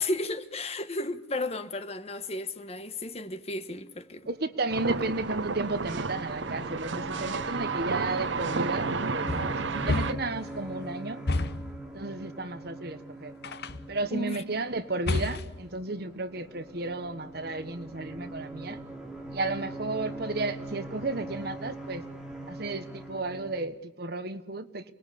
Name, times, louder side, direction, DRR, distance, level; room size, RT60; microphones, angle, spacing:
voice 1, 0.0-4.3 14.1-14.4, left 2 dB, 35° left, 1.4 m, -33 dB
sound 1, 4.1-23.6, right 1 dB, 5° right, 3.1 m, -42 dB
voice 2, 4.3-11.2 11.9-13.3 13.9-18.8 19.3-22.0 22.5-24.9, right 2 dB, 55° right, 1.4 m, -33 dB
sound 2, 4.7-10.1, right 4 dB, 75° right, 0.9 m, -32 dB
sound 3, 9.3-10.4 11.3-11.8 13.4-13.9 15.1-15.7, left 2 dB, 60° left, 0.9 m, -30 dB
29.0 x 20.5 x 8.6 m
head